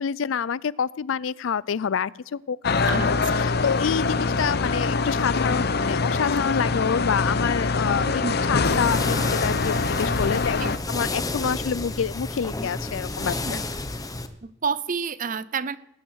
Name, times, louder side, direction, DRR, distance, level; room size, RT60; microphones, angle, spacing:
voice 1, 0.0-8.2 8.5-10.6 10.9-13.6, left 7 dB, 85° left, 22 dB, 0.4 m, -27 dB
sound 1, 2.6-10.8, left 4 dB, 55° left, 0.8 m, -24 dB
voice 2, 2.8-3.1 8.0-8.3 10.6-10.7 13.2-13.6 14.4-15.8, right 5 dB, 45° right, 17 dB, 0.6 m, -29 dB
sound 2, 8.6-14.3, left 2 dB, 20° left, 1.0 m, -31 dB
20.0 x 9.5 x 6.3 m, 0.85 s
head